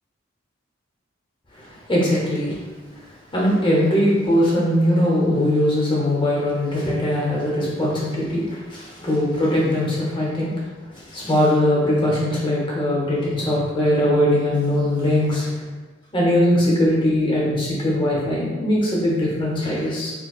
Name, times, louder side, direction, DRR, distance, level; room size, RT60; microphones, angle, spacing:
voice 1, 1.5-2.6 3.3-10.5 10.9-15.6 16.1-20.1, left 1 dB, 25° left, -5 dB, 0.9 m, -21 dB
4.4 x 2.2 x 2.4 m, 1.3 s
head